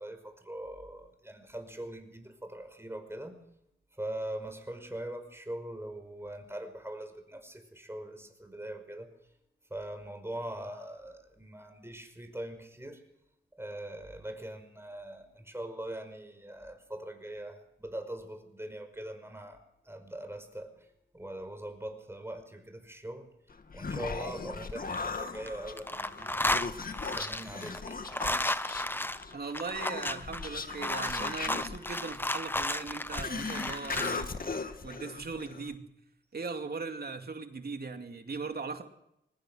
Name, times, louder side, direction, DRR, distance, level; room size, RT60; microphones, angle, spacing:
voice 1, 0.0-3.4 3.9-9.1 9.7-13.0 13.5-20.9 21.1-23.3 23.7-26.4 27.1-28.0, right 1 dB, 10° right, 7 dB, 5.4 m, -42 dB
Human voice, 23.5-35.7, left 4 dB, 45° left, 1.9 m, -38 dB
sound 1, 24.7-25.5 25.8-34.2, left 1 dB, 10° left, 1.0 m, -33 dB
voice 2, 29.3-34.5 34.8-35.8 36.3-38.8, right 4 dB, 55° right, 6 dB, 2.6 m, -39 dB
23.5 x 19.5 x 6.4 m, 0.81 s
cardioid pair, 65°, 20 cm